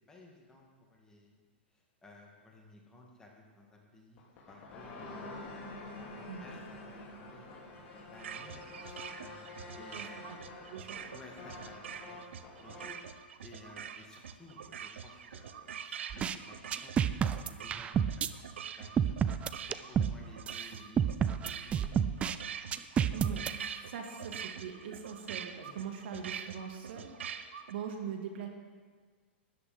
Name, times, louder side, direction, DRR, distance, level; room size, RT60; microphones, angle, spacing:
voice 1, 0.1-1.4 2.0-5.5 5.9-10.2 11.1-13.0 13.4-16.6 16.8-17.0 17.3-18.4 18.8-19.2 19.6-21.9 22.7-22.8 25.6-25.8, left 2 dB, 10° left, -1 dB, 2.2 m, -56 dB
sound 1, 4.2-13.0, left 2 dB, 35° left, 3.2 m, -47 dB
sound 2, 8.2-27.7, right 8 dB, 80° right, 0.8 m, -45 dB
voice 2, 9.9-10.4 10.7-11.1 23.1-28.5, right 7 dB, 65° right, 3 dB, 2.0 m, -42 dB
sound 3, 16.1-16.4 16.7-18.3 19.0-20.2 20.5-20.6 21.0-22.4 22.7-23.5, right 8 dB, 20° right, 0.4 m, -29 dB
13.0 x 10.0 x 5.2 m, 1.5 s
hypercardioid pair, 135°, 6 cm